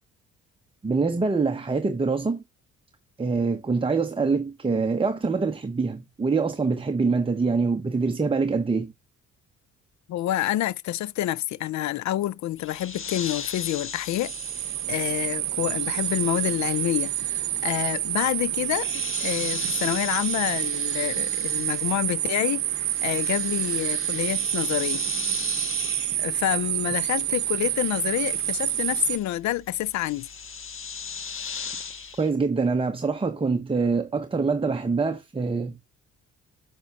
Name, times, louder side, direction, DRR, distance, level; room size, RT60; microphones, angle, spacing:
voice 1, 0.8-2.4 3.2-8.9 32.2-35.8, right 4 dB, 20° right, 0.8 m, -25 dB
voice 2, 10.1-14.3 14.9-18.9 19.2-25.1 26.2-30.3, left 14 dB, 65° left, 0.5 m, -28 dB
sound 1, 12.6-22.3 22.6-32.3, left 6 dB, 45° left, 1.3 m, -39 dB
sound 2, 14.2-29.2, right 13 dB, 70° right, 0.7 m, -28 dB
9.8 x 6.7 x 2.5 m
cardioid pair, 90°, 30 cm